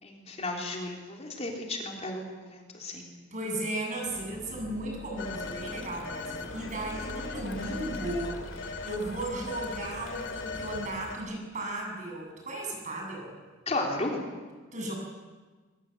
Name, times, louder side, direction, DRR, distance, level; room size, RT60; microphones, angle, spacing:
voice 1, 0.0-3.1 13.7-14.2, left 2 dB, 35° left, 0 dB, 3.7 m, -34 dB
voice 2, 3.3-13.3 14.7-14.9, right 1 dB, 40° right, 1 dB, 7.9 m, -35 dB
sound 1, 4.0-10.7, equal, ahead, 6.4 m, -45 dB
Telephone, 5.2-11.2, left 3 dB, 75° left, 2.6 m, -39 dB
24.0 x 23.0 x 8.1 m, 1.4 s
head